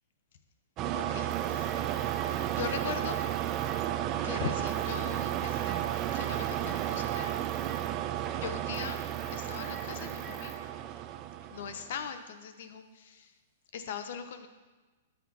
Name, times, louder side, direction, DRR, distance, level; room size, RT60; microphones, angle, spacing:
sound 1, 0.8-12.0, right 12 dB, 35° right, 0.4 m, -33 dB
voice 1, 0.9-1.7 2.5-3.2 4.2-5.8 6.1-7.3 8.3-9.0 9.3-10.6 11.5-13.3 13.7-14.5, left 7 dB, 60° left, 9 dB, 0.8 m, -40 dB
sound 2, 1.3-7.9 8.2-10.6, right 3 dB, 20° right, 1.3 m, -48 dB
12.5 x 6.6 x 2.9 m, 1.3 s
hypercardioid pair, 115°, 0 cm